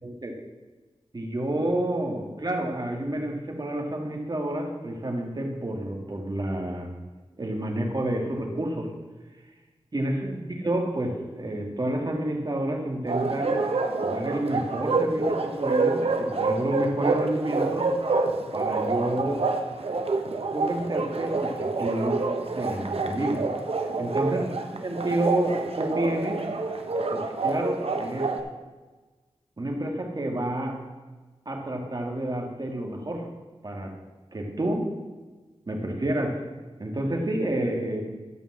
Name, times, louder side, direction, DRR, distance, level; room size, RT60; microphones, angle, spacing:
voice 1, 0.0-0.3 1.1-6.9 7.4-8.9 9.9-13.6 14.0-17.9 18.5-19.5 20.5-22.3 22.5-23.4 24.0-26.4 27.1-28.3 29.6-30.8 31.5-33.3 33.6-33.9 34.3-34.9 35.7-36.4 36.8-38.0, right 1 dB, 40° right, 1 dB, 2.2 m, -29 dB
Bark, 13.1-28.4, right 3 dB, 65° right, 1.1 m, -27 dB
12.5 x 5.4 x 7.4 m, 1.3 s
wide cardioid pair, 70°, 11 cm